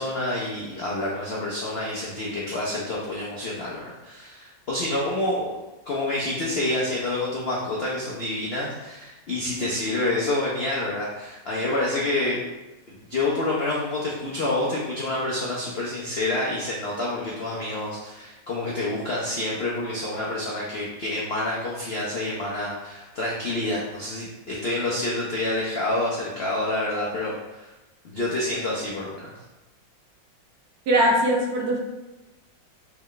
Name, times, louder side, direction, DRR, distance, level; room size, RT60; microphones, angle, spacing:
voice 1, 0.0-5.6 5.9-12.4 12.9-27.7 28.0-29.4, left 2 dB, 75° left, -5 dB, 0.5 m, -28 dB
voice 2, 30.9-31.8, right 1 dB, 70° right, 0 dB, 1.0 m, -20 dB
3.4 x 3.1 x 3.8 m, 1.1 s
omnidirectional pair, 2.0 m